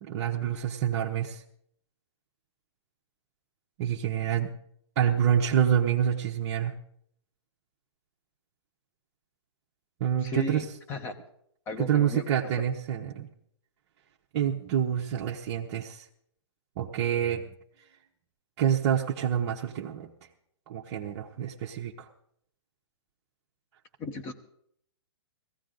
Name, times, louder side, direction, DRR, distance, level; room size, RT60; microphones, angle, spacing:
voice 1, 0.0-1.4 3.8-4.5 5.0-6.7 10.0-10.6 11.8-13.3 14.3-16.0 16.8-17.4 18.6-20.1 20.7-22.1, right 9 dB, 35° right, -2 dB, 1.0 m, -27 dB
voice 2, 10.2-11.2 11.7-12.3 24.0-24.3, left 2 dB, 15° left, 8 dB, 1.0 m, -35 dB
18.0 x 15.0 x 3.9 m, 0.69 s
hypercardioid pair, 160°, 15 cm